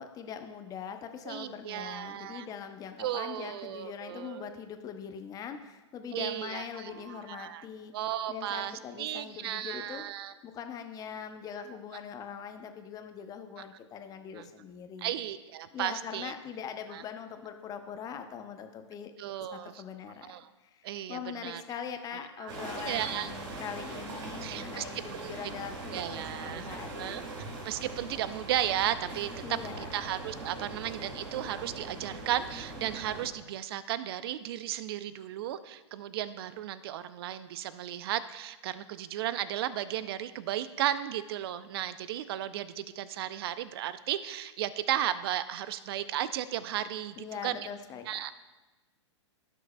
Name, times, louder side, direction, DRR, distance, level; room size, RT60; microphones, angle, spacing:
voice 1, 0.0-7.9 8.3-15.1 15.7-19.1 19.5-20.3 20.6-27.2 29.4-29.9 47.2-48.3, left 7 dB, 25° left, 7 dB, 0.8 m, -42 dB
voice 2, 1.3-2.5 3.0-4.5 6.1-6.6 7.1-7.6 7.9-10.3 14.3-14.4 15.0-16.3 16.9-17.0 19.2-19.7 20.2-20.4 20.8-21.6 22.4-22.5 22.8-23.3 24.4-24.8 25.2-25.3 25.9-27.2 27.6-29.3 29.8-47.2 47.4-47.6 48.1-48.3, right 12 dB, 55° right, 14 dB, 0.5 m, -34 dB
sound 1, 22.5-33.3, right 2 dB, 75° right, 2.4 m, -41 dB
15.5 x 6.3 x 2.3 m, 1.1 s
hypercardioid pair, 115°, 16 cm